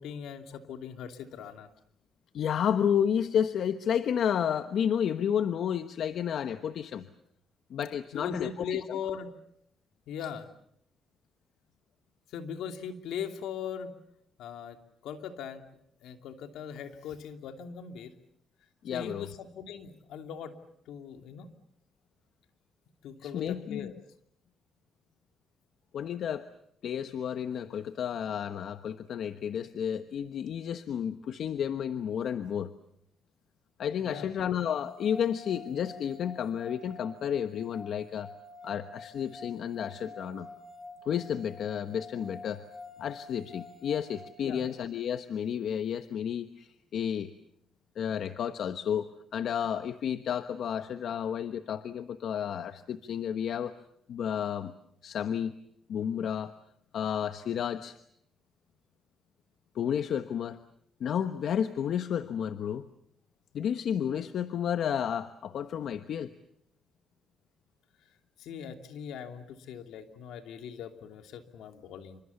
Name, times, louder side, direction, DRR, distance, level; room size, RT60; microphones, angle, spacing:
voice 1, 0.0-1.7 8.1-9.3 10.1-10.5 12.3-13.9 14.4-14.8 15.0-18.1 18.9-20.5 20.9-21.5 23.0-23.9 34.0-34.3 44.4-44.7 68.4-72.2, left 7 dB, 85° left, 6 dB, 2.8 m, -40 dB
voice 2, 2.3-7.1 7.7-9.2 18.8-19.3 23.2-23.9 25.9-26.5 26.8-32.7 33.8-38.3 38.6-40.5 41.0-42.6 43.0-47.3 47.9-53.7 54.1-54.7 55.0-55.5 55.9-56.5 56.9-58.0 59.7-60.6 61.0-62.9 63.5-66.3, left 8 dB, 65° left, 10 dB, 1.2 m, -31 dB
sound 1, 34.7-44.8, left 2 dB, 20° left, 3.4 m, -48 dB
28.5 x 26.0 x 7.1 m, 0.72 s
cardioid pair, 90°, 0 cm